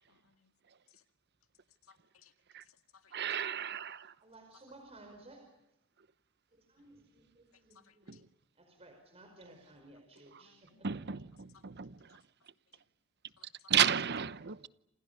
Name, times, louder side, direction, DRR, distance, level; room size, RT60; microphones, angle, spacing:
voice 1, 0.1-0.5 0.9-1.0 1.9-2.3 2.7-3.1 6.8-6.9 7.7-8.2 10.4-10.9 11.5-11.6 13.4-13.7, left 7 dB, 80° left, 2.0 m, -65 dB
voice 2, 3.1-4.1 8.1-8.2 10.3-10.4 10.8-11.9 13.7-14.7, right 8 dB, 55° right, 0.9 m, -32 dB
voice 3, 4.2-5.4 6.5-8.2 8.6-11.2, right 2 dB, 30° right, 5.0 m, -57 dB
28.5 x 27.5 x 6.7 m
head